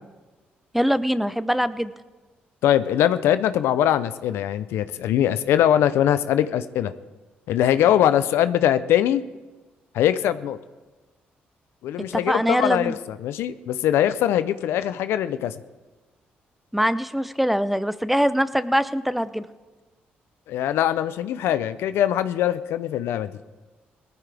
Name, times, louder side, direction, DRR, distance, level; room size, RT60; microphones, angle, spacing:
voice 1, 0.7-1.9 12.1-13.0 16.7-19.4, equal, 5° right, 14 dB, 0.7 m, -23 dB
voice 2, 2.6-6.9 7.5-9.2 9.9-10.6 11.8-15.5 20.5-23.3, left 11 dB, 80° left, 13 dB, 0.6 m, -22 dB
18.5 x 14.5 x 3.5 m, 1.2 s
supercardioid pair, 70°, 4 cm